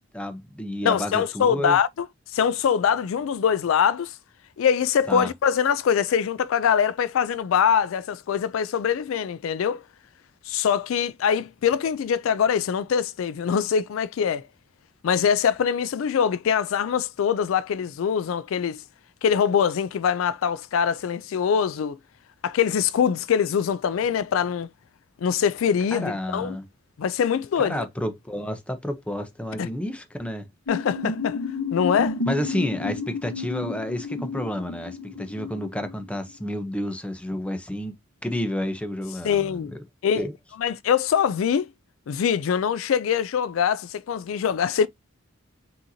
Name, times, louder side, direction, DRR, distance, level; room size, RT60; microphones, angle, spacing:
voice 1, 0.1-1.8 5.1-5.3 25.9-26.7 27.6-30.5 32.3-37.9 38.2-39.8 40.1-40.3, left 1 dB, 5° left, 0.7 m, -30 dB
voice 2, 0.8-2.1 2.3-4.2 4.6-9.8 10.5-14.4 15.0-18.8 19.2-22.0 22.4-24.7 25.2-26.6 27.0-27.9 29.6-29.7 30.7-31.4 31.7-32.2 39.2-39.7 40.0-40.2 40.6-41.7 42.1-44.9, left 7 dB, 75° left, 0.4 m, -23 dB
sound 1, 30.7-36.3, left 4 dB, 90° left, 1.1 m, -31 dB
6.3 x 2.8 x 2.7 m
head